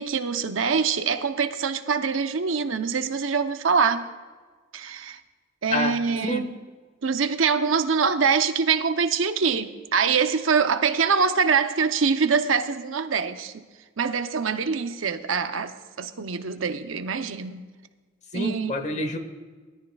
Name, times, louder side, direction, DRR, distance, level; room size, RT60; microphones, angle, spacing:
voice 1, 0.0-4.1 4.7-5.2 5.6-6.5 7.0-13.6 14.0-17.7 18.3-18.9, right 5 dB, 85° right, 0.7 m, -24 dB
voice 2, 18.3-19.2, left 1 dB, 35° left, 1.1 m, -27 dB
19.5 x 13.5 x 2.3 m
head